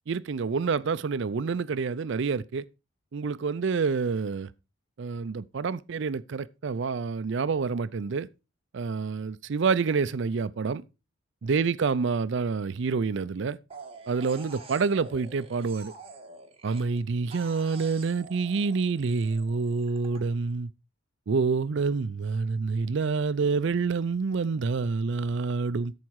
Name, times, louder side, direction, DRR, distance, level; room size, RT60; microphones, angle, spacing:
voice 1, 0.1-2.6 3.1-4.5 5.0-8.3 8.7-10.8 11.4-13.6 14.1-15.9 16.6-20.7 21.3-25.9, right 4 dB, 60° right, 0.4 m, -27 dB
sound 1, 13.7-17.0 17.3-20.2, right 3 dB, 30° right, 1.6 m, -47 dB
13.5 x 4.7 x 4.6 m
head